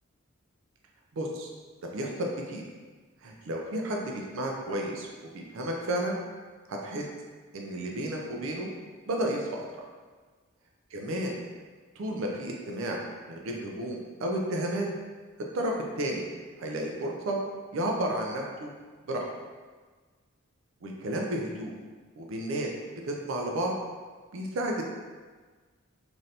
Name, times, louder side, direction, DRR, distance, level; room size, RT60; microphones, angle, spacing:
voice 1, 1.1-1.5 1.9-2.6 3.2-5.1 5.3-6.2 6.7-7.1 7.5-8.7 9.1-9.8 10.9-11.4 12.0-13.0 13.3-14.9 15.5-16.2 16.6-17.4 17.7-18.7 19.0-19.2 20.8-21.8 22.2-22.7 23.0-23.7 24.3-24.8, right 1 dB, 65° right, 0 dB, 0.4 m, -32 dB
3.2 x 2.6 x 2.7 m, 1.4 s
head